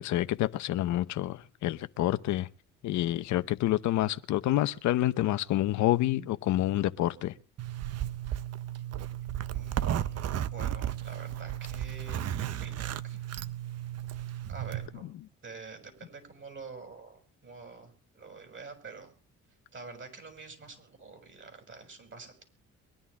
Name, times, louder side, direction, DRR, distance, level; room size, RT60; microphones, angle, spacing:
voice 1, 0.0-2.5 2.8-7.3, left 14 dB, 75° left, 0.9 m, -28 dB
Zipper (clothing), 7.6-14.9, right 11 dB, 55° right, 0.9 m, -34 dB
voice 2, 9.5-13.2 14.5-15.1 15.4-19.1 19.7-22.4, right 4 dB, 40° right, 6.8 m, -47 dB
23.5 x 11.0 x 3.5 m
supercardioid pair, 75°, 30 cm